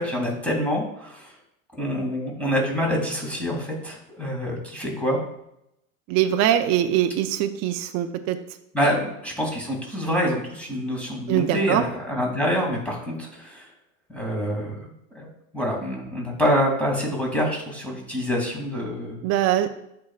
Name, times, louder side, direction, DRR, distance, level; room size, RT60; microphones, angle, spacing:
voice 1, 0.0-1.3 1.7-5.2 8.7-13.7 14.1-14.8 15.1-15.3 15.5-19.2, equal, 5° left, -1 dB, 2.4 m, -26 dB
voice 2, 6.1-8.4 8.8-8.9 11.3-11.8 19.2-19.7, right 11 dB, 40° right, 6 dB, 0.6 m, -22 dB
11.5 x 4.7 x 2.4 m, 0.79 s
hypercardioid pair, 110°, 41 cm